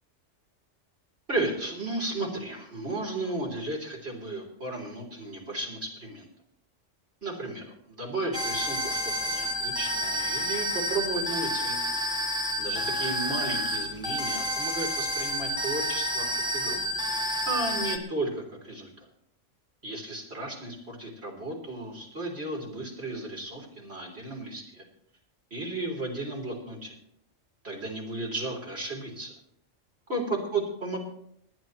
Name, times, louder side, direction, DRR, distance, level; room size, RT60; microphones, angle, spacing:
voice 1, 1.3-6.3 7.2-11.8 12.6-16.8 17.5-18.9 19.8-24.8 25.5-26.9 27.6-29.3 30.1-31.0, right 2 dB, 60° right, -1 dB, 3.9 m, -34 dB
sound 1, 8.3-18.0, equal, 5° right, 1.1 m, -29 dB
27.0 x 10.5 x 3.1 m, 0.69 s
omnidirectional pair, 1.2 m